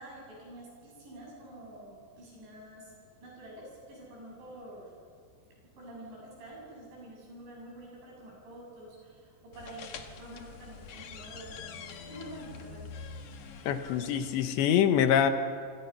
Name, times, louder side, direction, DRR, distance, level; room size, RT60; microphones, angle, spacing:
voice 1, 0.0-2.9 3.2-4.9 5.7-12.9, right 1 dB, 75° right, -3 dB, 10.5 m, -48 dB
sound 1, 9.5-14.5, left 6 dB, 60° left, 2.3 m, -45 dB
voice 2, 13.7-15.3, left 9 dB, 80° left, 8 dB, 3.5 m, -25 dB
27.0 x 27.0 x 5.9 m, 2.2 s
omnidirectional pair, 5.2 m